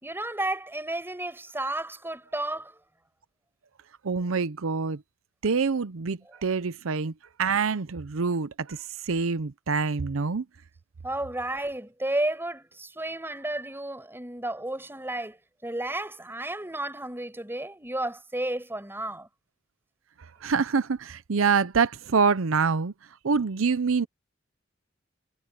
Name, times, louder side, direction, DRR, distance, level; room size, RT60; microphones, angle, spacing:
voice 1, 0.0-2.8 11.0-15.4 15.6-19.3, right 1 dB, 10° right, 5.6 m, -32 dB
voice 2, 4.0-5.0 5.4-7.1 7.4-10.4 20.4-22.9 23.2-24.1, right 5 dB, 85° right, 0.6 m, -26 dB
head